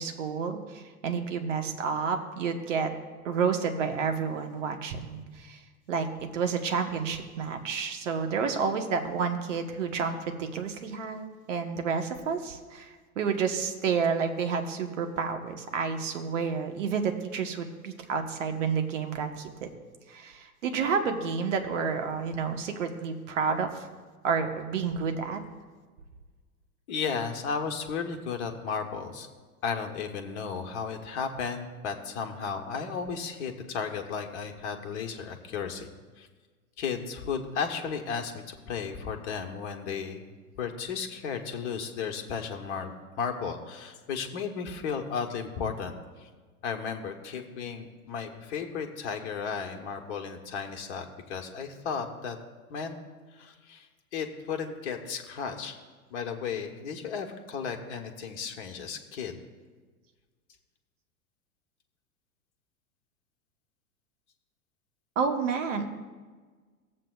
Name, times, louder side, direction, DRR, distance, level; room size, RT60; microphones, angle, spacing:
voice 1, 0.0-2.9 3.2-5.6 5.9-19.7 20.1-23.9 24.2-25.4 65.2-65.9, right 5 dB, 55° right, 6 dB, 1.2 m, -30 dB
voice 2, 26.9-29.3 29.6-35.9 36.2-36.3 36.8-40.3 40.6-42.9 43.2-46.3 46.6-52.4 52.7-52.9 53.3-53.9 54.1-55.7 56.1-59.4, left 6 dB, 50° left, 4 dB, 1.1 m, -34 dB
17.5 x 7.6 x 2.4 m, 1.4 s
figure-of-eight pair, 95°, 44 cm